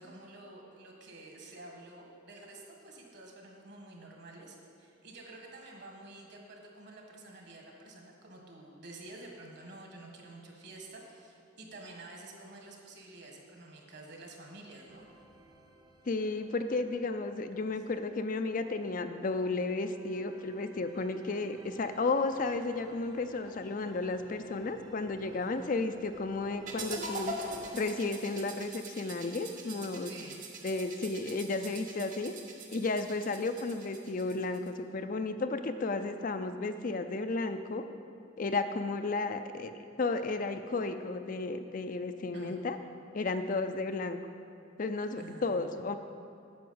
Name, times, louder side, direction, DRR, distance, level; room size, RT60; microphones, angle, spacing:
voice 1, 0.0-15.0 25.3-25.7 30.1-30.4 42.3-42.6 45.2-46.0, right 2 dB, 55° right, 1 dB, 1.7 m, -50 dB
sound 1, 14.9-27.7, right 1 dB, 20° right, 0.7 m, -56 dB
voice 2, 16.1-27.4 27.7-30.1 30.6-32.3 32.7-37.8 38.4-39.7 40.0-42.8 43.1-44.2 44.8-45.9, left 3 dB, 40° left, 8 dB, 0.4 m, -33 dB
sound 2, 26.7-34.7, right 2 dB, 40° right, 1.1 m, -43 dB
9.4 x 6.1 x 7.9 m, 2.4 s
head